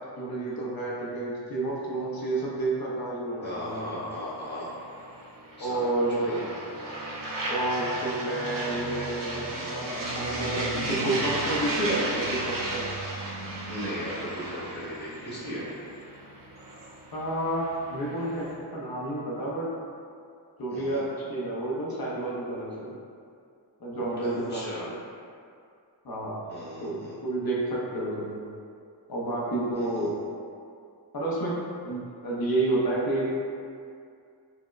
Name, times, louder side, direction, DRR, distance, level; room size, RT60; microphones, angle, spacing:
voice 1, 0.1-4.0 5.6-6.4 7.5-12.9 17.1-19.7 20.6-22.9 23.8-24.9 26.0-26.4 26.8-28.4 29.1-30.2 31.1-33.3, right 2 dB, 55° left, -5 dB, 0.7 m, -30 dB
voice 2, 3.4-4.7 5.6-5.9 6.2-6.4 13.6-15.7 20.7-21.0 24.2-24.8 26.5-27.1 29.7-30.1, equal, 25° left, -9 dB, 1.0 m, -37 dB
sound 1, 3.7-18.5, right 1 dB, 50° right, 0.6 m, -35 dB
4.5 x 2.0 x 2.3 m, 2.3 s
wide cardioid pair, 120°, 43 cm